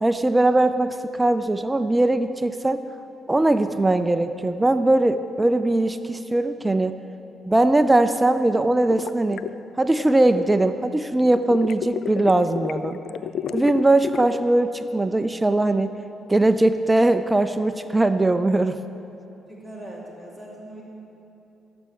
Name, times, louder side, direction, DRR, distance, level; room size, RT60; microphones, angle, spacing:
voice 1, 0.0-2.8 3.3-6.9 7.5-9.4 9.8-13.0 13.5-15.9 16.3-18.8, right 2 dB, 15° right, 10 dB, 0.4 m, -20 dB
sound 1, 8.9-10.7 11.3-14.5, left 9 dB, 70° left, 0.3 m, -31 dB
voice 2, 19.5-20.8, right 1 dB, 10° left, -5 dB, 2.3 m, -40 dB
14.0 x 7.0 x 6.4 m, 3.0 s
cardioid pair, 90°, 0 cm